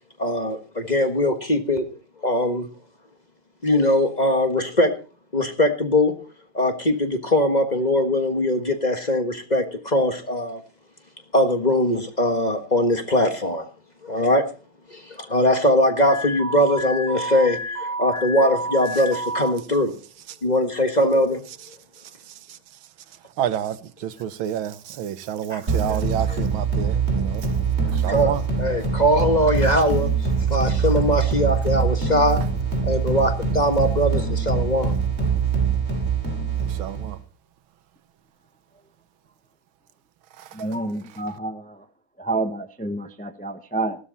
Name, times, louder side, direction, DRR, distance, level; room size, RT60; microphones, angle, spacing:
voice 1, 0.2-1.9 2.2-2.7 3.6-5.0 5.3-6.3 6.5-10.6 11.3-13.6 14.0-14.4 14.9-19.9 20.4-21.4 25.5-25.6 25.9-26.0 26.3-26.4 28.1-30.1 30.5-32.4 32.8-34.9, left 1 dB, 25° left, 1.5 m, -21 dB
Alarm, 16.0-19.5, right 1 dB, 55° left, 5.0 m, -30 dB
voice 2, 23.4-23.8 24.0-27.4 28.0-28.4 36.8-37.2, right 10 dB, 90° right, 1.8 m, -28 dB
sound 1, 25.7-37.2, right 5 dB, 35° right, 3.2 m, -23 dB
voice 3, 40.6-41.7 42.2-44.0, right 2 dB, 5° left, 0.6 m, -28 dB
15.0 x 13.0 x 4.1 m
omnidirectional pair, 2.2 m